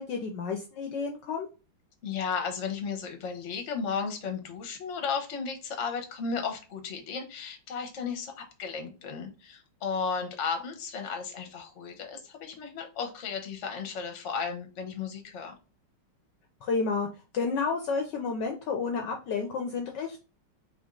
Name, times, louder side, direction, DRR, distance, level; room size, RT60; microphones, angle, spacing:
voice 1, 0.0-1.5 16.6-17.1 17.3-20.2, left 4 dB, 70° left, 3 dB, 1.2 m, -30 dB
voice 2, 2.0-15.5, left 5 dB, 45° left, 5 dB, 1.0 m, -34 dB
3.8 x 3.5 x 3.7 m, 0.32 s
omnidirectional pair, 2.3 m